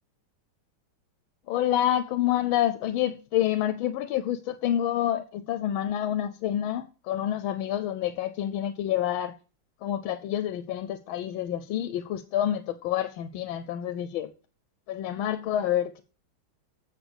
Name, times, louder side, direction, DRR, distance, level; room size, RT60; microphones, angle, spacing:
voice 1, 1.5-9.3 9.8-14.3 14.9-16.0, left 11 dB, 85° left, 1.4 m, -28 dB
8.0 x 6.4 x 7.9 m
omnidirectional pair, 2.2 m